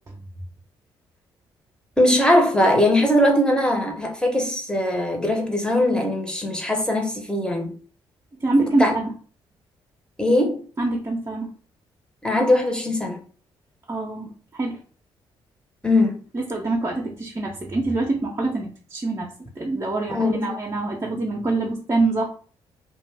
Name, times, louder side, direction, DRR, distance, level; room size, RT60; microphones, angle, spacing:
voice 1, 2.0-7.8 8.8-8.9 10.2-10.6 12.2-13.2 15.8-16.2 20.1-20.5, left 1 dB, 5° left, 0.9 m, -20 dB
voice 2, 8.4-9.1 10.8-11.5 13.9-14.8 16.3-22.3, right 2 dB, 25° right, 0.7 m, -25 dB
2.4 x 2.3 x 3.3 m
hypercardioid pair, 45°, 12 cm